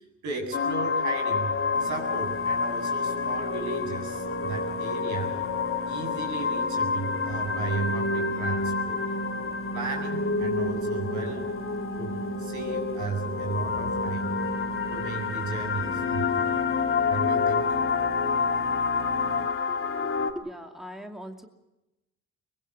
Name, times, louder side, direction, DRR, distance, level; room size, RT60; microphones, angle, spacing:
voice 1, 0.2-5.3 5.9-9.0 9.7-11.5 12.0-12.1 12.4-14.3 14.9-16.5 17.1-17.7, right 4 dB, 75° right, 4 dB, 7.9 m, -35 dB
sound 1, 0.5-20.3, left 4 dB, 45° left, 2.6 m, -28 dB
sound 2, 1.7-19.5, right 3 dB, 45° right, 5.7 m, -42 dB
voice 2, 19.7-21.5, equal, ahead, 4 dB, 2.5 m, -41 dB
24.0 x 21.0 x 6.9 m, 0.97 s
cardioid pair, 90°, 30 cm